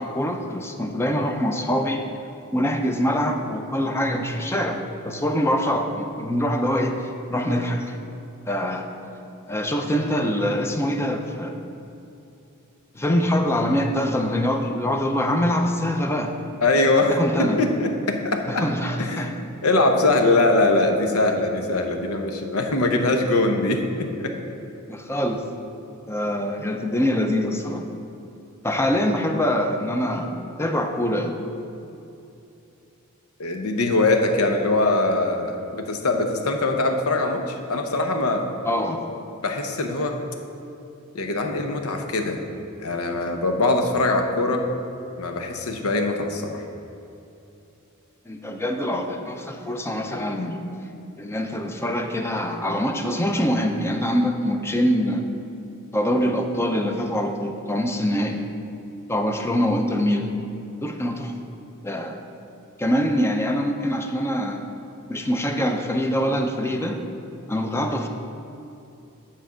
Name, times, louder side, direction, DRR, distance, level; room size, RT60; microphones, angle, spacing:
voice 1, 0.0-2.1 2.5-7.0 7.3-8.0 8.4-8.9 9.5-11.6 12.9-16.4 17.1-17.6 18.5-19.3 24.9-25.4 26.1-27.8 28.6-31.4 38.6-39.1 48.3-50.6 51.2-55.3 55.9-58.4 59.1-60.3 60.8-61.3 61.8-62.2 62.8-64.6 65.1-67.0 67.5-68.1, equal, 10° left, 4 dB, 0.5 m, -24 dB
voice 2, 16.6-17.1 17.4-18.7 19.0-19.3 19.6-24.4 33.4-38.4 39.4-40.2 41.1-42.4 42.8-44.6 45.2-46.6, left 2 dB, 85° left, 4 dB, 0.8 m, -22 dB
9.4 x 4.3 x 6.2 m, 2.8 s
head